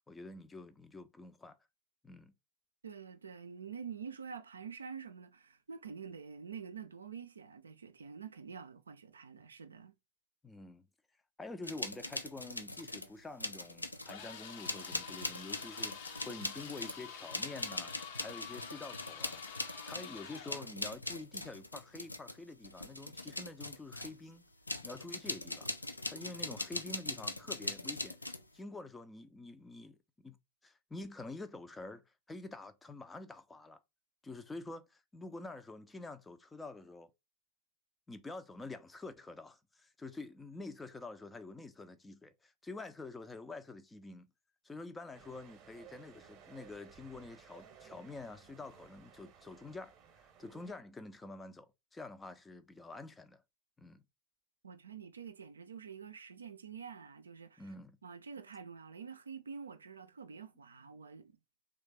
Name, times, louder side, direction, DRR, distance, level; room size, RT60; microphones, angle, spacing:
voice 1, 0.0-1.6 2.0-2.3 10.4-10.9 11.4-17.9 18.2-24.4 24.8-25.7 26.1-30.4 30.6-33.8 34.2-37.1 38.1-44.3 44.6-53.4 53.8-54.0 57.6-58.0, left 2 dB, 10° left, 0.4 m, -47 dB
voice 2, 2.8-9.9 54.6-57.7 58.0-61.4, right 6 dB, 75° right, 0.4 m, -47 dB
sound 1, 11.6-13.1 13.4-14.2 14.6-24.2 24.7-28.5, left 2 dB, 85° left, 0.4 m, -41 dB
sound 2, 14.0-20.7, left 7 dB, 55° left, 0.7 m, -48 dB
sound 3, 45.1-50.8, right 7 dB, 35° right, 0.8 m, -58 dB
3.2 x 2.4 x 3.3 m
figure-of-eight pair, 90°, 0 cm